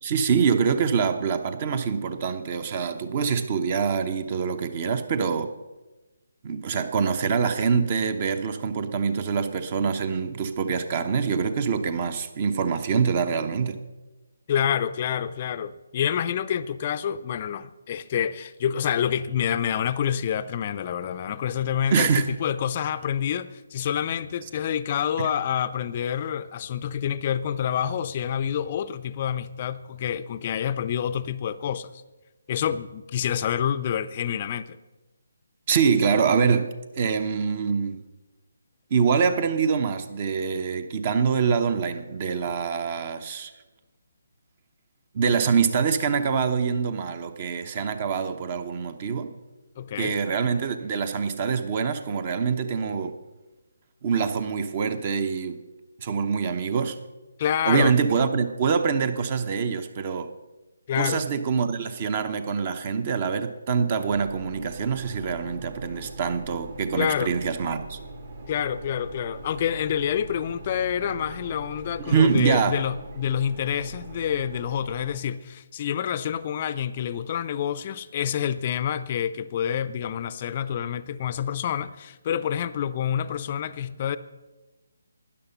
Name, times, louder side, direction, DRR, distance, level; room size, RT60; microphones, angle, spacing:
voice 1, 0.0-5.5 6.4-13.8 21.9-22.3 25.2-25.3 35.7-38.0 38.9-43.5 45.1-49.3 50.0-53.2 54.0-55.6 56.0-57.0 57.6-60.3 60.9-68.0 72.0-72.8, right 6 dB, 35° right, 11 dB, 0.9 m, -25 dB
voice 2, 14.5-31.9 32.5-34.8 49.8-50.1 57.4-57.9 60.9-61.2 66.9-67.3 68.5-84.2, left 9 dB, 35° left, 14 dB, 0.5 m, -27 dB
sound 1, 64.1-75.2, right 2 dB, 55° right, 2.9 m, -41 dB
12.5 x 9.8 x 5.5 m, 1.2 s
figure-of-eight pair, 145°, 0 cm